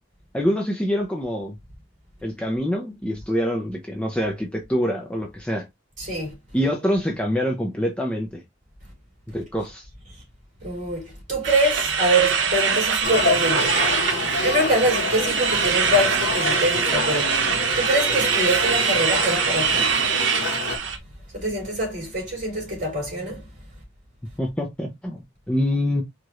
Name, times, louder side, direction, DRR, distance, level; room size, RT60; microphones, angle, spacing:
voice 1, 0.3-1.6 2.2-5.7 6.5-8.4 9.3-9.9 24.4-26.0, equal, 5° left, 0.6 m, -25 dB
voice 2, 6.0-6.3 10.6-20.0 21.3-23.5, right 1 dB, 45° right, 2.7 m, -25 dB
sound 1, 11.4-21.0, right 6 dB, 80° right, 0.8 m, -23 dB
Male speech man speaking / Child speech kid speaking / Conversation, 13.0-20.8, left 4 dB, 70° left, 1.1 m, -29 dB
4.6 x 2.5 x 3.0 m
head